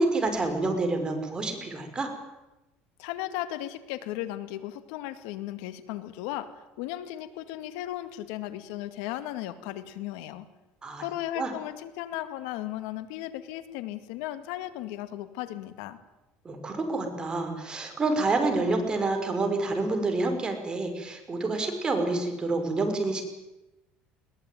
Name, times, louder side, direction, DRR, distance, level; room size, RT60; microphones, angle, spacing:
voice 1, 0.0-2.1 10.8-11.0 11.4-11.5 16.4-23.2, right 2 dB, 20° right, 5 dB, 5.6 m, -28 dB
voice 2, 3.0-10.4 11.0-16.0, left 14 dB, 85° left, 11 dB, 2.2 m, -36 dB
21.5 x 18.5 x 9.5 m, 1.0 s
cardioid pair, 125°, 4 cm